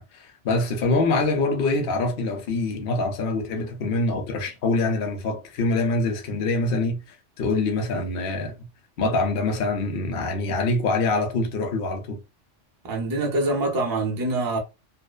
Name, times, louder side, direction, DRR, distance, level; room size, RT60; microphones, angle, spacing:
voice 1, 0.0-7.0 7.4-8.7 9.0-12.2, left 2 dB, 60° left, 0.8 m, -25 dB
voice 2, 12.8-14.6, right 2 dB, 35° right, 0.3 m, -25 dB
2.6 x 2.0 x 2.2 m
omnidirectional pair, 1.2 m